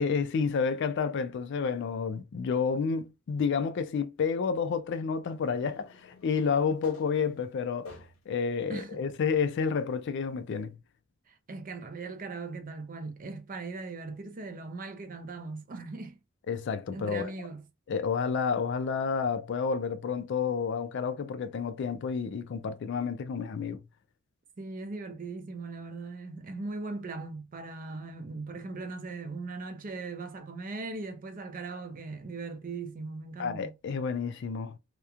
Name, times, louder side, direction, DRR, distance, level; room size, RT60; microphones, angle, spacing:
voice 1, 0.0-8.0 8.3-10.8 16.5-17.3 17.9-23.8 33.4-34.8, left 5 dB, 55° left, 0.3 m, -30 dB
sound 1, 5.3-8.4 9.0-9.1 10.5-10.6, left 4 dB, 90° left, 0.9 m, -50 dB
voice 2, 8.7-9.1 11.3-16.2 16.9-17.6 24.6-33.8, right 3 dB, 40° right, 0.5 m, -39 dB
2.9 x 2.1 x 2.4 m
head